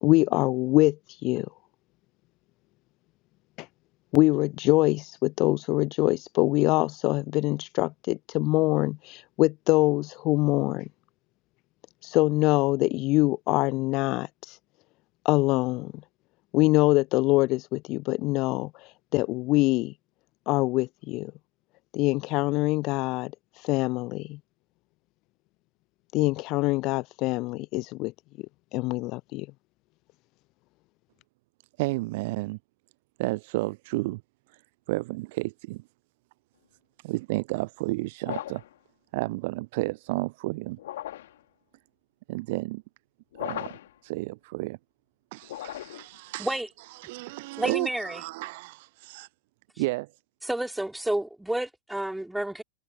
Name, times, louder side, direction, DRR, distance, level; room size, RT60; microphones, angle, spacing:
voice 1, 0.0-1.0 1.2-1.5 3.6-3.7 4.1-10.9 12.0-14.6 15.2-15.9 16.5-19.9 20.5-21.3 21.9-23.3 23.6-24.4 26.1-28.1 28.7-29.5, left 21 dB, 40° left, 0.6 m, -24 dB
voice 2, 31.8-32.6 33.2-34.2 34.9-35.8 37.0-38.6 39.1-40.8 42.3-42.8 43.3-43.8 44.0-44.8 45.3-46.5 47.0-49.3 49.8-50.1, right 22 dB, 50° right, 0.4 m, -31 dB
sound 1, 38.2-38.8 40.8-41.4 43.3-44.0 45.4-46.2, left 13 dB, 55° left, 2.8 m, -37 dB
voice 3, 47.6-48.2 50.4-52.6, right 1 dB, 5° right, 3.4 m, -30 dB
figure-of-eight pair, 90°, 0 cm